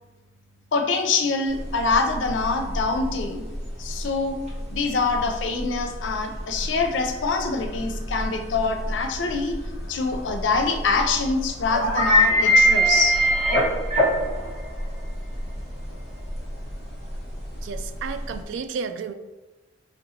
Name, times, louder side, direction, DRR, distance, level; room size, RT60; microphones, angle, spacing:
voice 1, 0.7-3.4 3.8-4.4 4.7-9.6 9.9-13.2, left 4 dB, 75° left, 4 dB, 0.5 m, -25 dB
sound 1, 1.5-18.4, equal, 40° right, 1.0 m, -25 dB
voice 2, 17.6-19.1, right 5 dB, 80° right, 9 dB, 0.3 m, -32 dB
4.3 x 2.8 x 2.7 m, 1.1 s
head